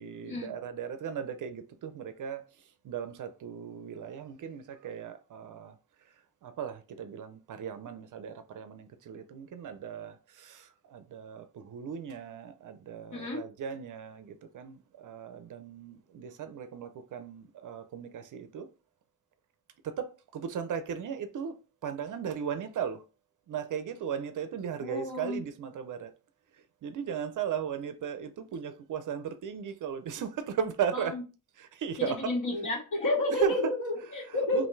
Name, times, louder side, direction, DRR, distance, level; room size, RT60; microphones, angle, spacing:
voice 1, 0.0-2.4 2.8-5.7 6.4-18.7 19.8-21.6 21.8-23.0 23.5-26.1 26.5-31.2 31.6-32.4 33.3-33.7 34.3-34.7, right 7 dB, 50° right, 0.5 m, -37 dB
voice 2, 13.1-13.4 24.8-25.4 30.9-31.2 32.0-34.7, left 2 dB, 50° left, 1.8 m, -31 dB
5.6 x 2.6 x 3.1 m
wide cardioid pair, 170°, 39 cm